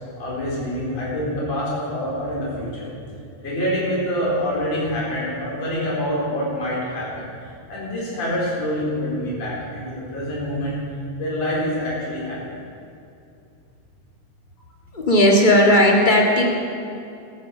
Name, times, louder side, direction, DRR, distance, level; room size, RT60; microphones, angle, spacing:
voice 1, 0.2-2.9 3.4-7.3 7.7-10.8 11.2-12.6, equal, 55° left, -7 dB, 5.5 m, -26 dB
voice 2, 14.9-16.4, left 1 dB, 20° left, 0 dB, 1.5 m, -15 dB
14.0 x 13.0 x 6.6 m, 2.6 s
omnidirectional pair, 3.5 m